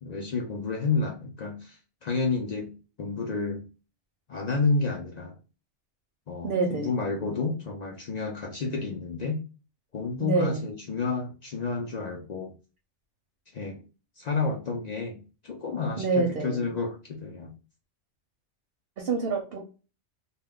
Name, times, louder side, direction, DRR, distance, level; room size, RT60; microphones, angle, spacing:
voice 1, 0.0-3.7 4.3-5.4 6.3-9.4 9.9-12.5 13.5-13.8 14.2-17.5, left 4 dB, 55° left, 1 dB, 0.4 m, -30 dB
voice 2, 6.4-6.9 10.2-10.6 16.0-16.6 19.0-19.6, right 4 dB, 60° right, 3 dB, 0.7 m, -26 dB
2.2 x 2.1 x 3.5 m, 0.33 s
omnidirectional pair, 1.2 m